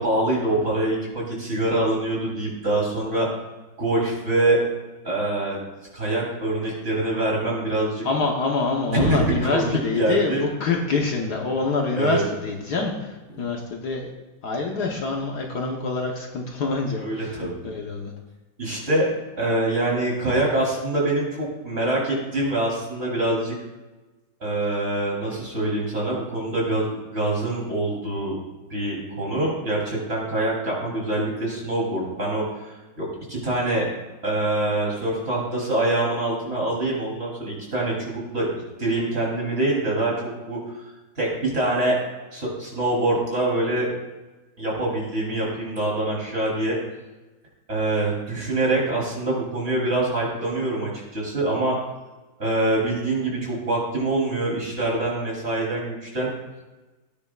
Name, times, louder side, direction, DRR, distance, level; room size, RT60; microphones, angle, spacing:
voice 1, 0.0-3.3 3.8-4.6 5.0-5.6 5.9-8.1 8.9-10.4 12.0-12.2 13.3-13.4 16.8-17.6 18.6-19.1 19.4-23.6 24.4-28.4 28.7-33.8 34.2-38.5 38.8-40.8 41.2-42.0 42.3-43.9 44.6-46.8 47.7-51.8 52.4-56.3, right 2 dB, 30° right, -4 dB, 3.7 m, -25 dB
voice 2, 8.0-14.1 14.4-18.1, left 3 dB, 60° left, 1 dB, 1.6 m, -26 dB
18.0 x 9.6 x 2.4 m, 1.2 s
omnidirectional pair, 2.1 m